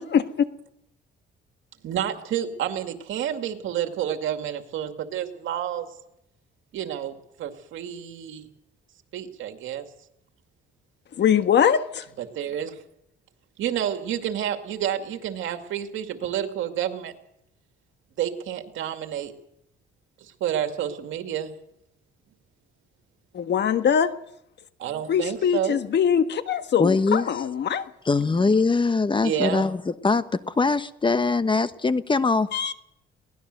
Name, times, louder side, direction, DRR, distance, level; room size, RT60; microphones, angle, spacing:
voice 1, 1.8-5.9 6.7-8.5 9.1-9.9 12.2-12.8 13.6-17.1 18.2-19.3 20.2-21.5 24.8-25.8 29.2-29.7, right 10 dB, 80° right, 6 dB, 2.3 m, -29 dB
voice 2, 11.2-12.0 23.3-24.1 25.1-27.8 32.5-32.7, left 8 dB, 60° left, 10 dB, 1.5 m, -22 dB
voice 3, 26.8-27.3 28.0-32.5, left 4 dB, 25° left, 12 dB, 1.2 m, -22 dB
22.0 x 18.0 x 6.7 m, 0.77 s
cardioid pair, 90°, 20 cm